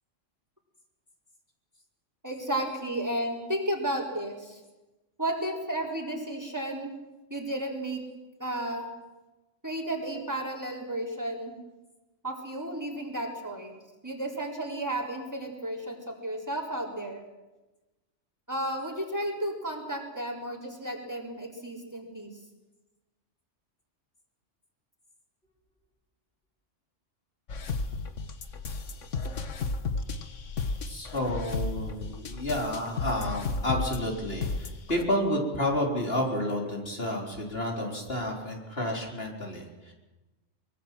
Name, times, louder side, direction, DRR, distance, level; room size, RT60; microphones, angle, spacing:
voice 1, 2.2-4.6 5.2-6.9 7.3-8.0 8.4-8.9 9.6-11.6 12.2-13.7 14.0-17.2 18.5-22.3, right 1 dB, 15° right, 0 dB, 3.9 m, -33 dB
sound 1, 27.5-35.0, left 4 dB, 80° left, 1.7 m, -33 dB
voice 2, 30.9-39.9, left 1 dB, 50° left, 0 dB, 4.1 m, -30 dB
24.0 x 22.0 x 7.5 m, 1.1 s
omnidirectional pair, 1.3 m